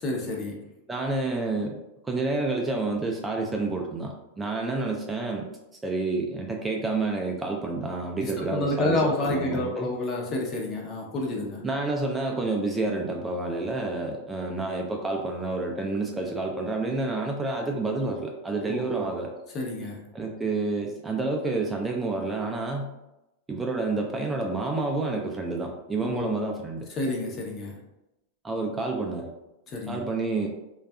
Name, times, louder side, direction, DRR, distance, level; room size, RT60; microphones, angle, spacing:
voice 1, 0.0-0.6 8.2-11.6 18.7-19.1 19.5-20.0 26.0-26.3 27.0-27.8 29.7-30.0, left 2 dB, 35° left, -1 dB, 0.7 m, -29 dB
voice 2, 0.9-1.8 2.0-5.5 5.8-9.9 11.6-19.3 20.1-22.9 23.5-26.9 28.4-29.3 29.9-30.5, right 3 dB, 15° right, 1 dB, 0.3 m, -29 dB
2.6 x 2.3 x 2.2 m, 0.93 s
hypercardioid pair, 110°, 0 cm